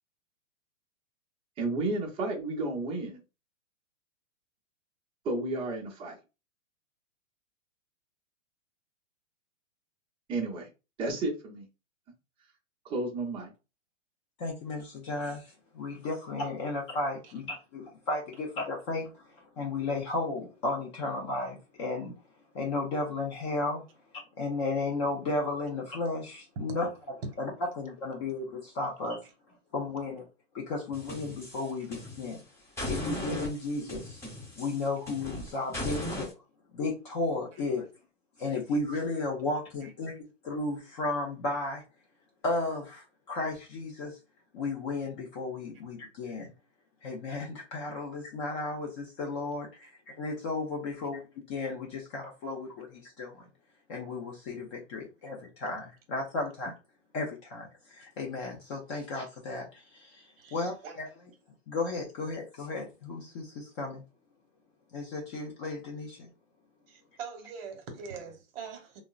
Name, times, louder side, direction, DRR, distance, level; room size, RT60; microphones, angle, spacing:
voice 1, 1.6-3.2 5.2-6.1 10.3-10.7 11.0-11.7 12.8-13.5, right 2 dB, 15° right, 0.7 m, -32 dB
voice 2, 14.4-19.3 19.6-22.1 22.5-23.8 24.4-26.9 27.4-29.2 29.7-30.3 30.5-32.4 32.9-34.2 34.6-36.3 36.7-37.9 38.4-41.8 42.4-44.2 44.5-46.5 47.0-53.4 53.9-56.7 57.1-61.1 61.7-64.0 64.9-66.3, left 3 dB, 25° left, 0.4 m, -34 dB
sound 1, 30.9-32.4 32.8-36.3, left 1 dB, 5° left, 1.1 m, -38 dB
voice 3, 60.4-60.9 66.9-69.0, right 6 dB, 45° right, 1.0 m, -44 dB
3.5 x 2.0 x 2.3 m
hypercardioid pair, 130°, 39 cm